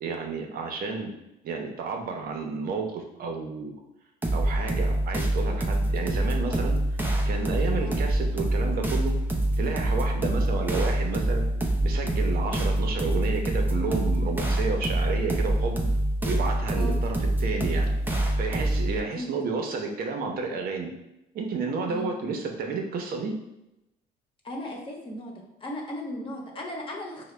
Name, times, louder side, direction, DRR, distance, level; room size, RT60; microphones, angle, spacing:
voice 1, 0.0-1.1 1.4-3.7 4.3-6.8 7.2-9.1 9.6-11.5 11.8-15.8 16.3-18.0 18.4-20.9 21.3-23.3, right 4 dB, 60° right, 2 dB, 0.8 m, -31 dB
sound 1, 4.2-19.0, right 1 dB, 10° right, 0.6 m, -25 dB
voice 2, 24.4-25.3 25.6-27.3, left 1 dB, 30° left, -1 dB, 1.0 m, -36 dB
4.8 x 2.2 x 3.2 m, 0.88 s
cardioid pair, 110°, 17 cm